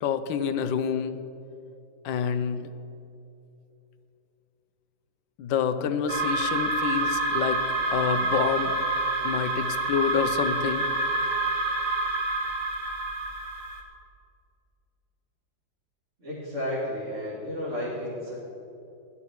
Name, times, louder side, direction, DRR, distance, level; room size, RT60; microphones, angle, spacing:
voice 1, 0.0-1.2 2.0-2.7 5.4-7.6 7.9-8.8 9.2-10.9, left 7 dB, 75° left, 10 dB, 1.4 m, -27 dB
sound 1, 6.1-13.8, right 2 dB, 50° right, 1.9 m, -27 dB
voice 2, 16.2-18.4, left 1 dB, 35° right, -9 dB, 3.2 m, -32 dB
17.0 x 11.5 x 4.7 m, 2.8 s
omnidirectional pair, 2.1 m